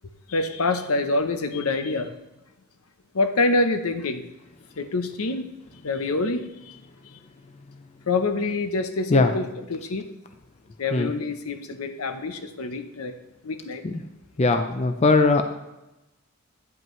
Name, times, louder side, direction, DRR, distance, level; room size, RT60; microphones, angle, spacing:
voice 1, 0.3-2.1 3.1-4.2 4.8-5.5 5.8-6.8 8.1-10.1 10.8-13.1 13.4-13.8, left 3 dB, 80° left, 9 dB, 0.7 m, -26 dB
voice 2, 14.4-15.4, left 3 dB, 30° left, 8 dB, 0.4 m, -19 dB
9.6 x 7.8 x 3.1 m, 0.97 s
head